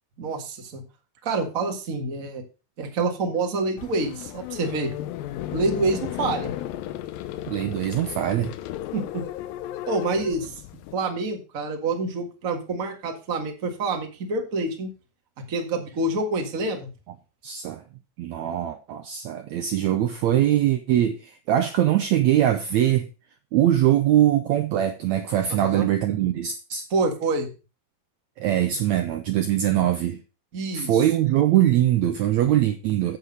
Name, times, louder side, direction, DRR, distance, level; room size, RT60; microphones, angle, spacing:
voice 1, 0.2-0.8 1.2-2.4 2.8-4.9 5.5-6.5 8.9-9.2 9.9-10.6 10.9-14.9 15.4-16.9 25.5-25.9 26.9-27.5 30.5-31.1, right 3 dB, 35° right, 1.5 m, -27 dB
sound 1, 3.8-10.9, left 13 dB, 90° left, 2.5 m, -34 dB
voice 2, 7.5-8.5 17.4-17.8 18.2-23.1 23.5-26.8 28.4-30.2 30.7-33.2, right 12 dB, 75° right, 1.7 m, -22 dB
8.2 x 8.0 x 5.2 m
omnidirectional pair, 4.0 m